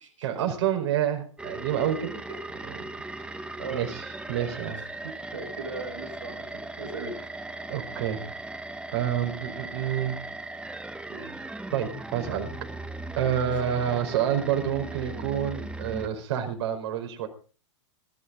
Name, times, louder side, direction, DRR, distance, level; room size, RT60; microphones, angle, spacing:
voice 1, 0.2-2.2 2.7-2.8 3.7-4.8 7.7-8.3 8.9-10.2 11.7-12.5 13.2-17.3, right 9 dB, 60° right, 5 dB, 4.9 m, -28 dB
sound 1, 1.4-16.1, right 2 dB, 5° right, 1.3 m, -38 dB
voice 2, 4.7-6.5 6.8-7.2 11.1-11.4 13.4-13.5, right 3 dB, 85° right, 5 dB, 5.2 m, -38 dB
22.0 x 12.0 x 3.9 m, 0.38 s
hypercardioid pair, 105°, 16 cm